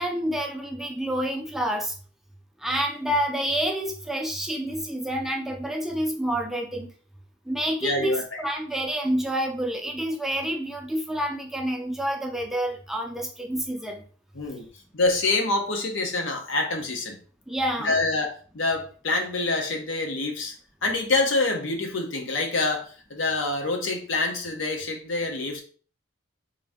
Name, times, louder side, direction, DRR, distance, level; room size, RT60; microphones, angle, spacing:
voice 1, 0.0-1.9 2.6-6.9 7.5-14.0 17.5-17.9, right 1 dB, ahead, 1 dB, 0.4 m, -28 dB
voice 2, 7.8-8.4 14.3-14.7 14.9-17.2 17.8-20.5 20.8-25.6, left 2 dB, 75° left, 3 dB, 0.9 m, -26 dB
3.7 x 2.7 x 3.6 m, 0.41 s
head